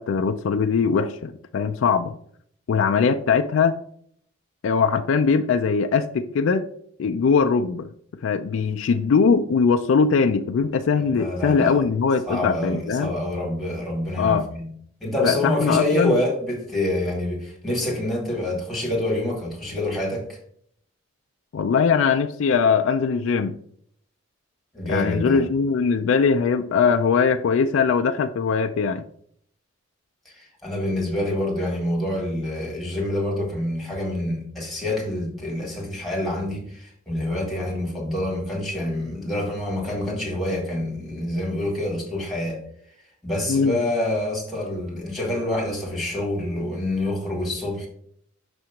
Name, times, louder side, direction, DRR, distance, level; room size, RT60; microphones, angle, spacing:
voice 1, 0.0-2.1 2.7-3.8 4.6-6.7 7.0-7.9 8.2-13.1 14.2-14.4 15.2-16.2 21.5-23.6 24.8-29.0 43.5-43.8, left 5 dB, 65° left, 0.3 m, -21 dB
voice 2, 11.0-11.8 12.2-14.7 15.0-20.4 24.7-25.4 30.2-42.6 43.2-47.9, left 1 dB, ahead, 1.6 m, -27 dB
6.1 x 2.8 x 5.6 m
head